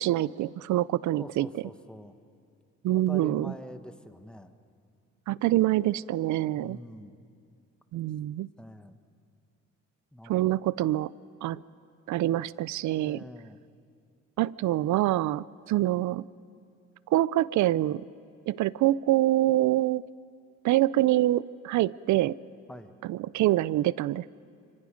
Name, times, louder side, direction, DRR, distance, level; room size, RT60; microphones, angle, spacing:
voice 1, 0.0-1.5 2.8-3.5 5.3-6.8 7.9-8.5 10.3-11.1 11.4-11.6 12.1-13.2 14.4-16.3 17.1-18.0 18.5-20.0 20.6-22.4 23.0-24.3, right 15 dB, 75° right, 20 dB, 0.5 m, -25 dB
voice 2, 1.2-2.2 2.9-4.5 6.5-7.2 8.6-9.0 10.1-10.6 12.9-13.6 22.7-23.0, equal, 5° left, 9 dB, 1.2 m, -45 dB
26.0 x 25.0 x 5.2 m, 2.3 s
cardioid pair, 90°, 30 cm